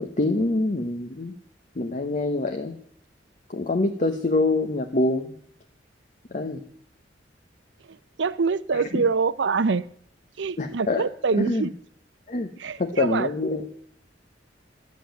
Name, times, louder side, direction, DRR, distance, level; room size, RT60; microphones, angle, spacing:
voice 1, 0.0-1.4 1.7-2.8 3.5-5.3 6.3-6.6 8.7-9.0 10.6-11.1 11.5-11.7 12.3-12.5 12.8-13.7, left 2 dB, 45° left, 0.9 m, -25 dB
voice 2, 8.2-9.8 10.4-11.7 12.6-13.3, right 4 dB, 80° right, 0.6 m, -25 dB
11.0 x 7.3 x 9.3 m
head